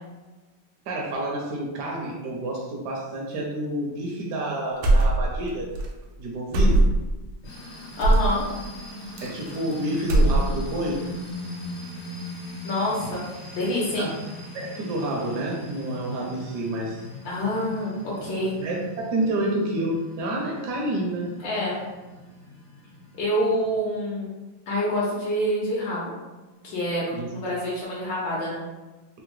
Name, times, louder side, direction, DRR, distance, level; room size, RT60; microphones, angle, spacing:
voice 1, 0.9-5.7 6.2-6.8 9.2-11.0 14.0-14.1 14.5-17.0 18.1-18.2 18.6-21.3 27.1-27.3, right 1 dB, 75° right, -2 dB, 1.1 m, -29 dB
sound 1, 4.8-5.5 5.7-5.9 6.5-7.2 8.0-8.3 9.2-9.7 10.0-10.7, right 1 dB, 90° right, 1.3 m, -19 dB
sound 2, 7.4-23.8, left 1 dB, 55° left, 0.8 m, -40 dB
voice 2, 8.0-8.4 12.6-13.2 13.5-14.1 17.2-18.6 21.4-21.8 23.2-24.3 24.7-26.1 26.6-28.6, equal, 80° left, -5 dB, 1.3 m, -26 dB
3.7 x 2.0 x 3.0 m, 1.2 s
omnidirectional pair, 2.0 m